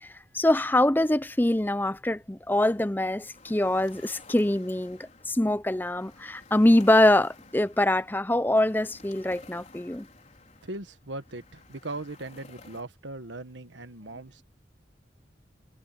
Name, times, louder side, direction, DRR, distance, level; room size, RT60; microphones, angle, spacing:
voice 1, 0.0-5.0 5.3-10.1, left 1 dB, 10° left, 0.6 m, -24 dB
sound 1, 2.5-12.8, left 3 dB, 40° left, 4.5 m, -53 dB
voice 2, 10.6-14.4, right 2 dB, 85° right, 1.5 m, -39 dB
head